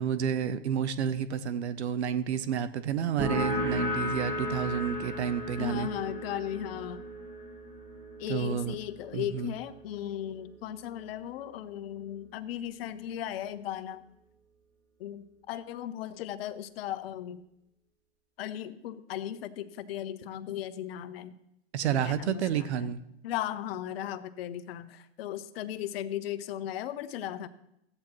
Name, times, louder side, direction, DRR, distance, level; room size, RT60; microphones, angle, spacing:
voice 1, 0.0-5.9 8.3-8.8 9.1-9.5 21.7-23.0, right 8 dB, 90° right, 14 dB, 0.7 m, -30 dB
sound 1, 3.2-10.5, equal, 50° right, 3.6 m, -35 dB
voice 2, 5.6-7.0 8.2-14.0 15.0-17.4 18.4-21.3 22.0-22.9 23.2-27.5, left 11 dB, 65° left, 12 dB, 0.8 m, -36 dB
14.0 x 8.8 x 3.0 m, 0.82 s
hypercardioid pair, 125°, 32 cm